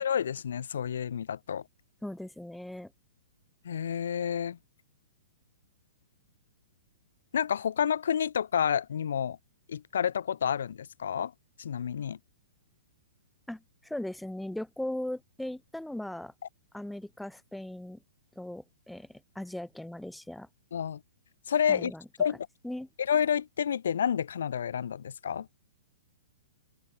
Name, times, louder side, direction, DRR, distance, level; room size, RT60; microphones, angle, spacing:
voice 1, 0.0-1.6 3.6-4.6 7.3-9.4 9.7-11.3 11.6-12.2 20.7-21.0 21.5-21.9 22.2-22.4 23.0-25.5, left 8 dB, 80° left, 0.9 m, -29 dB
voice 2, 2.0-2.9 13.5-16.3 16.7-18.0 18.4-20.5 21.7-22.0 22.6-22.9, left 1 dB, ahead, 2.3 m, -38 dB
open air
hypercardioid pair, 160°, 0 cm